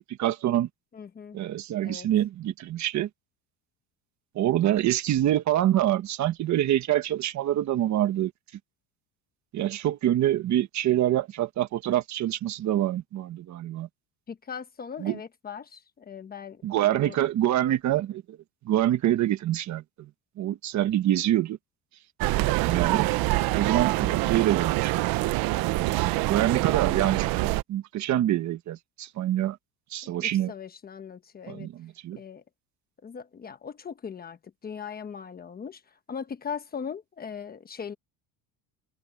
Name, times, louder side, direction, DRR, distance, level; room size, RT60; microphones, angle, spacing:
voice 1, 0.2-0.7 1.3-3.1 4.3-8.3 9.5-13.9 15.0-15.2 16.6-18.2 18.6-20.1 20.4-21.6 22.6-23.1 23.5-24.9 26.3-29.6 29.9-30.5 31.5-32.2, right 12 dB, 45° right, 1.4 m, -26 dB
voice 2, 0.9-1.4 1.8-2.1 14.3-17.2 24.0-24.4 26.8-27.2 30.2-31.7 32.2-32.4 33.0-37.9, left 7 dB, 20° left, 1.1 m, -39 dB
sound 1, 22.2-27.6, right 19 dB, 60° right, 0.8 m, -25 dB
cardioid pair, 160°, 41 cm